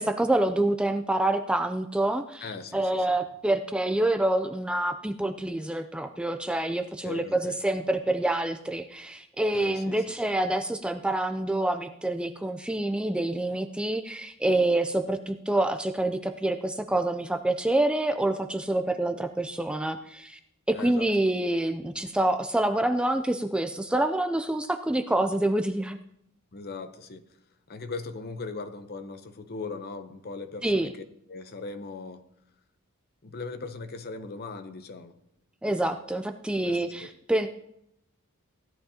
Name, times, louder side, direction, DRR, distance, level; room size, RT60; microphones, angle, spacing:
voice 1, 0.0-2.4 2.7-20.4 20.7-26.0 30.6-30.9 35.6-37.5, right 1 dB, 5° right, 7 dB, 0.4 m, -27 dB
voice 2, 2.4-3.2 7.0-7.6 9.5-10.0 20.7-21.1 26.5-27.3 27.7-32.3 33.2-35.2 36.6-37.1, left 4 dB, 45° left, 9 dB, 0.8 m, -39 dB
16.0 x 11.0 x 2.8 m, 0.77 s
head